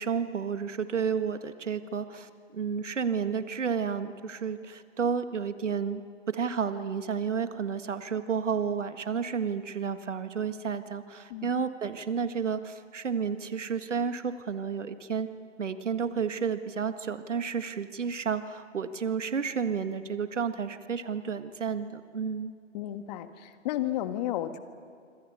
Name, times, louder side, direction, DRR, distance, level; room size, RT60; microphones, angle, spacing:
voice 1, 0.0-6.0 6.3-15.3 15.6-22.5, right 6 dB, 75° right, 10 dB, 1.8 m, -31 dB
voice 2, 22.7-24.6, left 13 dB, 35° left, 10 dB, 1.6 m, -32 dB
26.5 x 26.0 x 6.9 m, 2.3 s
figure-of-eight pair, 130°, 37 cm